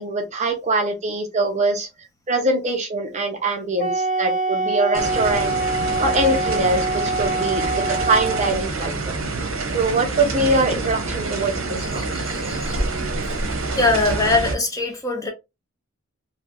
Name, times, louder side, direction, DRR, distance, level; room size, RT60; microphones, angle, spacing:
voice 1, 0.0-1.9 2.3-5.6 6.0-9.1 9.7-11.5 11.9-12.0, right 2 dB, 35° right, 0.7 m, -23 dB
Wind instrument woodwind instrument, 3.8-8.7, right 2 dB, 45° left, 1.4 m, -24 dB
sound 1, 4.9-14.6, right 3 dB, 75° right, 0.9 m, -27 dB
voice 2, 11.8-12.8 13.5-15.3, left 3 dB, 15° left, 0.7 m, -23 dB
3.2 x 2.8 x 2.5 m
head